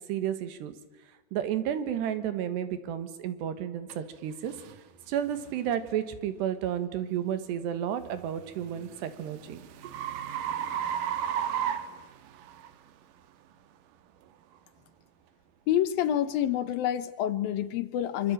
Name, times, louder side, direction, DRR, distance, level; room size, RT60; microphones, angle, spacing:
voice 1, 0.1-0.7 1.3-4.5 5.1-9.6, right 10 dB, 90° right, 11 dB, 3.8 m, -32 dB
sound 1, 3.9-4.0 4.6-4.8 5.4-5.6 8.2-12.7, right 9 dB, 70° right, 2.4 m, -33 dB
voice 2, 15.7-18.3, left 11 dB, 70° left, 13 dB, 2.6 m, -27 dB
25.5 x 24.5 x 8.9 m, 1.2 s
omnidirectional pair, 4.7 m